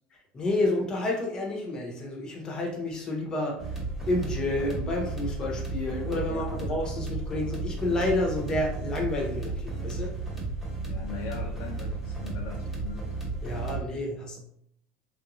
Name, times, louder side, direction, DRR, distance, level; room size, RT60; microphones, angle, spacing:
voice 1, 0.1-3.8 4.1-10.1 13.4-14.4, left 2 dB, 20° left, -1 dB, 0.8 m, -30 dB
sound 1, 3.6-13.8, right 3 dB, 5° right, 1.0 m, -34 dB
voice 2, 6.3-6.7 10.0-10.1 10.8-13.1, left 6 dB, 50° left, 1 dB, 0.5 m, -41 dB
3.4 x 2.5 x 3.0 m, 0.70 s
cardioid pair, 155°, 4 cm